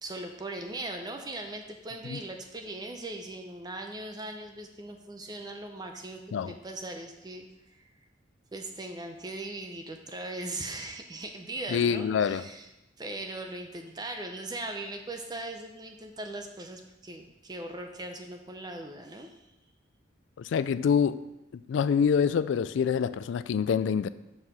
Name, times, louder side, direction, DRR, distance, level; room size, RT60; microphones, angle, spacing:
voice 1, 0.0-7.9 8.5-12.7 13.0-19.4, right 2 dB, 20° right, 4 dB, 0.5 m, -39 dB
voice 2, 11.7-12.5 20.4-21.3 21.5-24.1, left 7 dB, 75° left, 15 dB, 0.3 m, -26 dB
5.5 x 4.7 x 6.4 m, 0.93 s
head